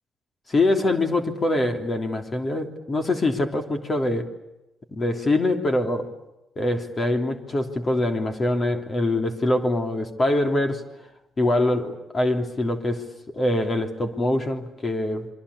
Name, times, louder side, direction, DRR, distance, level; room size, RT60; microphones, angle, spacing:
voice 1, 0.5-4.3 4.9-6.1 6.6-10.8 11.4-13.1 13.3-15.3, left 2 dB, 35° left, 5 dB, 3.3 m, -24 dB
27.5 x 24.5 x 8.5 m, 0.95 s
cardioid pair, 90°, 0 cm